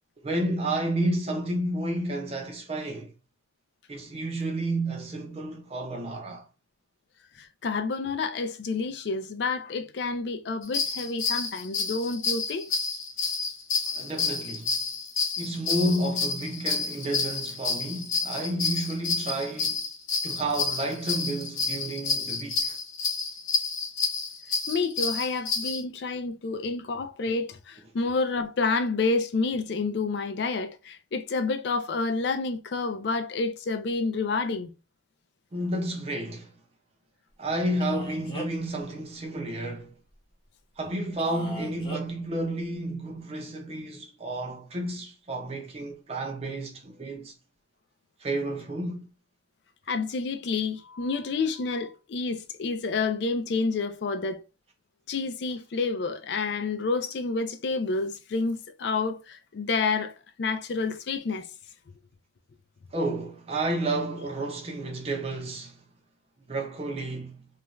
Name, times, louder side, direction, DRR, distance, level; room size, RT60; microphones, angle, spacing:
voice 1, 0.2-3.1 3.9-6.4 13.9-14.8 15.4-19.8 20.2-22.8 35.5-36.5 37.4-39.9 40.8-47.3 48.2-49.1 62.9-65.8 66.5-67.5, right 1 dB, 30° right, 0.5 m, -31 dB
voice 2, 7.4-12.7 24.7-34.7 49.9-54.4 55.1-60.1 60.4-61.5, left 4 dB, 55° left, 0.4 m, -29 dB
sound 1, 10.6-25.8, left 4 dB, 85° left, 0.8 m, -29 dB
Male speech man speaking, 37.8-38.7 41.2-42.0, equal, 25° left, 0.7 m, -39 dB
2.4 x 2.2 x 3.0 m
head